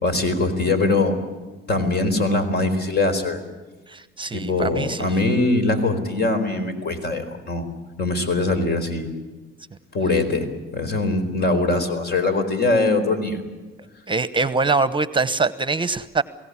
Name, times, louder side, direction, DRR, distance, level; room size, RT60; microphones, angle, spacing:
voice 1, 0.0-1.2 1.7-3.4 4.3-7.6 8.0-9.2 9.9-10.5 10.7-13.4, left 2 dB, 55° left, 9 dB, 4.3 m, -22 dB
voice 2, 3.9-5.1 14.1-16.2, right 4 dB, 25° right, 14 dB, 1.0 m, -23 dB
23.0 x 17.0 x 9.8 m, 1.3 s
cardioid pair, 90°, 20 cm